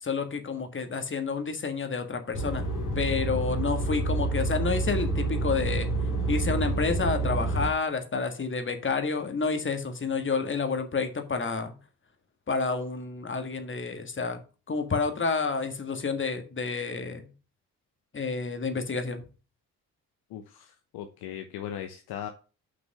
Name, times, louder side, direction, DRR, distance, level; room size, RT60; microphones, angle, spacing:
voice 1, 0.0-2.6 2.9-5.9 6.3-11.7 12.5-14.4 14.7-17.3 18.1-19.2, left 4 dB, 25° left, 7 dB, 1.7 m, -29 dB
sound 1, 2.3-7.7, right 2 dB, 75° left, 2.4 m, -28 dB
voice 2, 20.3-22.3, left 10 dB, 55° left, 6 dB, 1.0 m, -38 dB
6.0 x 6.0 x 6.4 m, 0.35 s
figure-of-eight pair, 45°, 45 cm